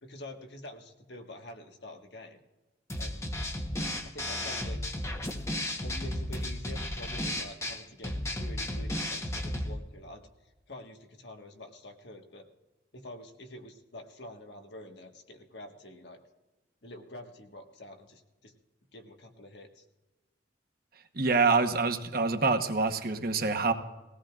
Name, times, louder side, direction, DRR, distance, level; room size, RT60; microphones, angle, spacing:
voice 1, 0.0-2.4 3.0-3.3 4.0-4.8 5.8-10.2 10.7-12.5 12.9-16.2 16.8-18.5 18.9-19.8, left 1 dB, 65° left, 4 dB, 1.5 m, -47 dB
sound 1, 2.9-9.8, left 1 dB, 15° left, 1.0 m, -34 dB
voice 2, 21.1-23.7, right 4 dB, 50° right, 6 dB, 1.0 m, -26 dB
21.0 x 17.0 x 2.4 m, 1.1 s
head